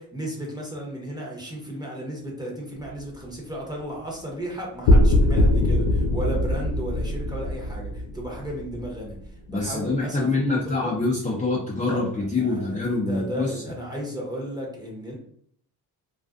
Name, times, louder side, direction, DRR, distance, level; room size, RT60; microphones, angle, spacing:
voice 1, 0.0-10.9 11.9-12.0 12.4-15.2, equal, 10° right, -2 dB, 0.9 m, -34 dB
sound 1, 4.8-9.2, left 1 dB, 75° left, 0.6 m, -21 dB
voice 2, 9.5-13.5, left 3 dB, 15° left, -5 dB, 0.6 m, -25 dB
2.5 x 2.3 x 2.4 m, 0.64 s
cardioid pair, 80°, 44 cm